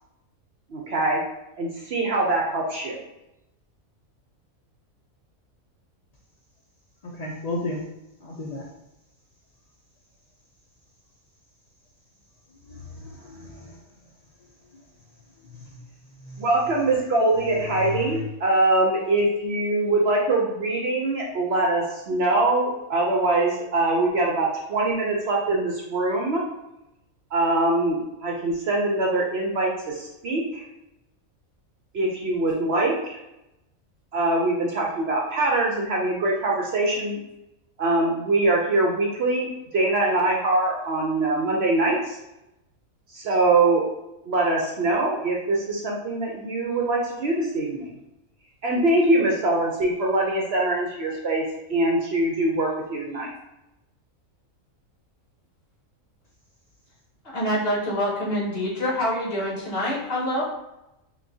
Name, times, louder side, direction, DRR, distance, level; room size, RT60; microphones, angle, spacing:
voice 1, 0.7-1.2 1.6-3.0 16.4-26.4 27.3-30.6 31.9-33.2 34.1-37.2 37.8-39.5 39.7-42.2 43.1-43.8 44.3-47.9 48.6-51.4 51.7-53.3, right 2 dB, 60° right, -1 dB, 0.8 m, -23 dB
voice 2, 7.0-7.8 8.2-8.7 12.6-13.8 14.7-14.8 15.4-15.7 16.1-16.5 17.3-18.2, left 2 dB, 65° left, -3 dB, 0.4 m, -34 dB
voice 3, 57.3-60.4, equal, 45° left, -6 dB, 1.5 m, -26 dB
5.9 x 2.3 x 2.7 m, 0.91 s
omnidirectional pair, 1.4 m